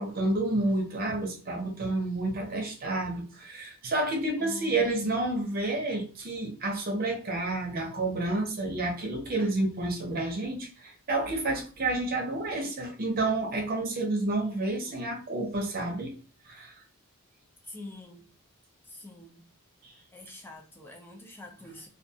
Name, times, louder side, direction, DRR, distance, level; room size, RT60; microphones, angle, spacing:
voice 1, 0.0-16.1 16.5-16.7, right 2 dB, 40° right, 0.6 m, -30 dB
voice 2, 4.4-5.0 14.7-15.0 17.6-18.3 18.8-19.4 19.9-21.9, left 2 dB, 10° left, 0.4 m, -45 dB
2.4 x 2.2 x 2.7 m
head